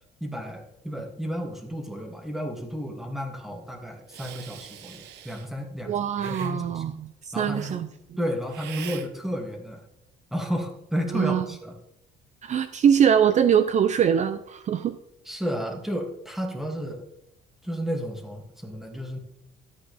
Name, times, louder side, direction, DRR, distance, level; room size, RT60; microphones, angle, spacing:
voice 1, 0.2-5.9 6.2-6.8 7.3-7.8 8.2-9.8 10.3-11.8 15.2-17.0 17.6-19.2, equal, ahead, 2 dB, 2.4 m, -32 dB
Hiss, 4.1-5.5 6.2-6.5 7.5-7.8 8.5-9.1, right 9 dB, 85° right, 1.1 m, -42 dB
voice 2, 5.8-7.9 11.1-11.4 12.4-15.0, right 8 dB, 45° right, 11 dB, 0.6 m, -22 dB
13.0 x 8.8 x 3.5 m, 0.83 s
cardioid pair, 110°, 17 cm